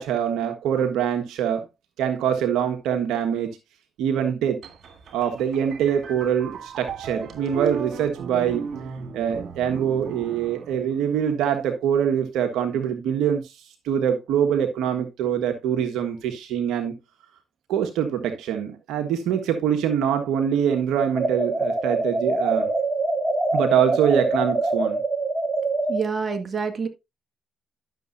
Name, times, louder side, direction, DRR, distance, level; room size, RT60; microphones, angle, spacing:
voice 1, 0.0-1.6 2.0-3.6 4.0-4.6 5.1-8.7 9.1-13.5 13.8-17.0 17.7-22.7 23.5-25.0, right 8 dB, 80° right, 1.3 m, -24 dB
sound 1, 4.6-11.3, right 6 dB, 65° right, 2.8 m, -36 dB
sound 2, 21.2-26.0, right 2 dB, 20° right, 2.9 m, -24 dB
voice 2, 25.9-26.9, right 5 dB, 40° right, 2.0 m, -27 dB
11.5 x 6.9 x 2.6 m
supercardioid pair, 55°, 0 cm